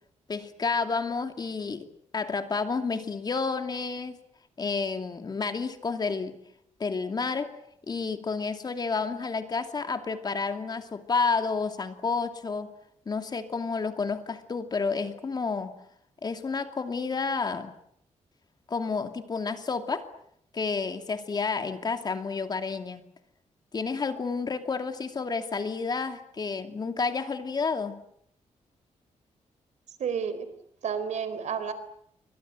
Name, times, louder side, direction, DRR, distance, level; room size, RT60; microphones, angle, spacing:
voice 1, 0.3-1.9 2.1-4.2 4.6-6.4 6.8-7.6 7.9-12.7 13.1-15.7 16.2-17.7 18.7-20.1 20.5-23.0 23.7-28.0, left 4 dB, 35° left, 7 dB, 2.6 m, -30 dB
voice 2, 30.0-30.5 30.8-31.7, right 7 dB, 75° right, 12 dB, 4.1 m, -30 dB
29.5 x 25.0 x 7.7 m, 0.70 s
wide cardioid pair, 155°, 12 cm